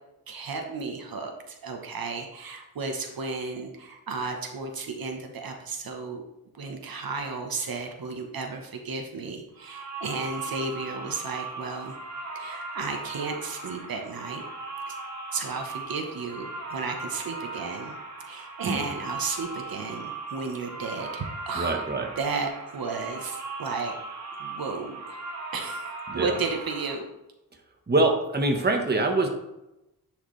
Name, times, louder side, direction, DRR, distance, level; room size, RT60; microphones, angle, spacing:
voice 1, 0.3-6.2 6.5-12.0 12.3-14.4 14.9-15.0 15.3-18.0 18.2-21.8 22.2-23.9 24.4-25.2 25.5-25.9 26.1-27.1, right 4 dB, 75° right, 3 dB, 1.1 m, -33 dB
sound 1, 9.6-27.0, right 3 dB, 50° right, 1.7 m, -38 dB
voice 2, 21.5-22.1 26.1-26.3 27.9-29.3, right 2 dB, 30° right, 3 dB, 1.2 m, -24 dB
10.5 x 4.8 x 3.2 m, 0.92 s
wide cardioid pair, 115°, 35 cm